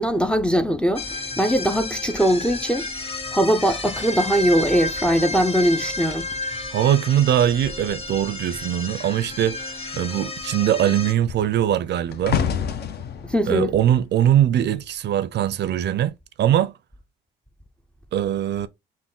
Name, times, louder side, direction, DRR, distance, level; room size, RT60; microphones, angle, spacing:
voice 1, 0.0-2.9 3.3-6.3 13.3-13.7, equal, 5° left, 0.4 m, -21 dB
sound 1, 1.0-11.1, left 3 dB, 30° left, 1.0 m, -31 dB
sound 2, 6.0-8.8 9.1-9.4 9.7-15.1 15.8-16.1, left 7 dB, 55° left, 0.5 m, -31 dB
voice 2, 6.7-12.4 13.5-16.1 16.4-16.7 18.1-18.7, right 11 dB, 60° right, 0.4 m, -21 dB
3.6 x 2.2 x 3.7 m
cardioid pair, 90°, 20 cm